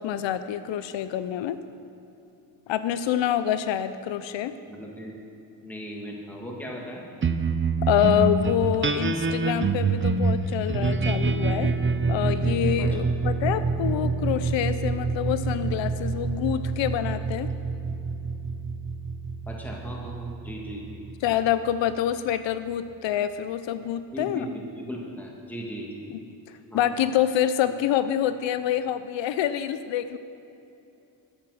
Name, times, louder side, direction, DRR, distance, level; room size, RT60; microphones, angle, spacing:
voice 1, 0.0-1.6 2.7-4.5 7.8-11.7 12.1-17.5 21.2-24.5 26.7-30.2, left 10 dB, 85° left, 12 dB, 0.7 m, -26 dB
voice 2, 4.7-5.1 5.6-7.0 12.8-12.9 19.5-21.0 24.1-26.1 26.7-26.9, equal, 5° left, -2 dB, 1.7 m, -37 dB
sound 1, 7.2-21.9, right 4 dB, 25° right, 0.6 m, -26 dB
13.0 x 8.9 x 6.2 m, 2.8 s
cardioid pair, 115°, 43 cm